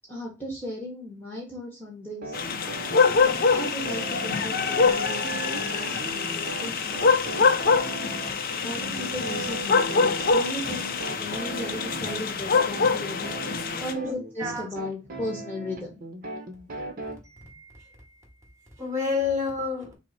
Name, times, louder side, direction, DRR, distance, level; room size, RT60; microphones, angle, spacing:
voice 1, 0.1-2.4 3.5-7.1 8.6-13.3 13.8-16.0, left 1 dB, 10° left, 1.2 m, -36 dB
sound 1, 2.2-17.2, right 3 dB, 45° right, 0.8 m, -38 dB
sound 2, 2.3-13.9, left 5 dB, 50° left, 0.5 m, -25 dB
voice 2, 14.0-14.7 17.2-19.9, left 4 dB, 15° right, 1.9 m, -31 dB
6.1 x 2.1 x 4.1 m
head